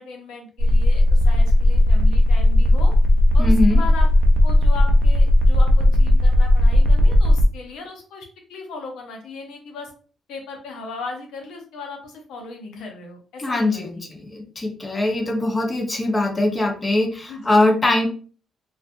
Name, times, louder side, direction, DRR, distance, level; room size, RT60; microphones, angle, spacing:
voice 1, 0.0-2.9 3.3-4.1 4.4-9.9 10.3-14.1 17.3-17.7, left 4 dB, 85° left, 3 dB, 0.7 m, -37 dB
sound 1, 0.6-7.4, left 1 dB, 85° right, 0.4 m, -15 dB
voice 2, 3.4-3.8 13.4-18.1, left 2 dB, 25° left, 2 dB, 0.7 m, -21 dB
2.5 x 2.3 x 2.5 m, 0.40 s
cardioid pair, 90°, 0 cm